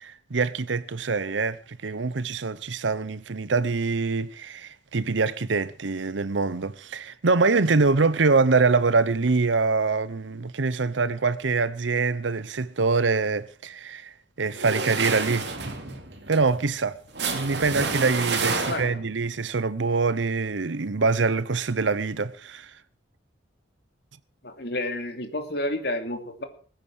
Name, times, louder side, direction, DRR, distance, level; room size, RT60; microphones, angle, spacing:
voice 1, 0.0-15.5 16.3-17.0 17.3-22.8, right 4 dB, 85° right, 0.8 m, -24 dB
sound 1, 14.5-19.2, right 4 dB, 65° right, 2.8 m, -29 dB
voice 2, 18.5-18.8 24.4-26.4, left 1 dB, 60° left, 2.7 m, -30 dB
21.0 x 9.1 x 6.3 m
head